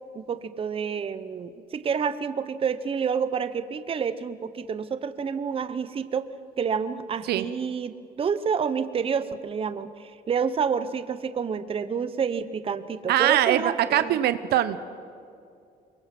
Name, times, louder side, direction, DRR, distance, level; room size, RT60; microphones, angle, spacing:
voice 1, 0.1-6.3 6.6-14.2, right 6 dB, 35° right, 12 dB, 0.9 m, -29 dB
voice 2, 13.1-14.8, right 12 dB, 70° right, 13 dB, 0.9 m, -22 dB
23.5 x 22.5 x 6.0 m, 2.4 s
cardioid pair, 110°, 17 cm